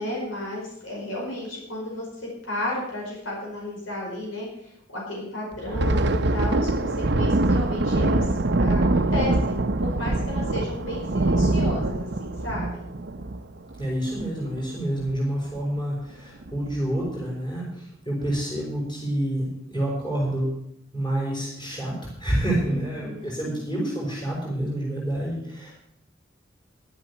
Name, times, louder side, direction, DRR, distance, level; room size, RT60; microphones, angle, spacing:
voice 1, 0.0-8.3 8.6-12.8 22.6-23.7, left 1 dB, 85° left, -3 dB, 5.1 m, -33 dB
Thunder, 5.5-14.6 14.9-15.2 15.5-15.8 16.4-16.9, right 2 dB, 55° right, 0.7 m, -24 dB
voice 2, 13.8-20.5 20.9-21.9 22.2-25.7, right 1 dB, 25° left, -4 dB, 5.5 m, -28 dB
12.0 x 8.7 x 7.2 m, 0.75 s
head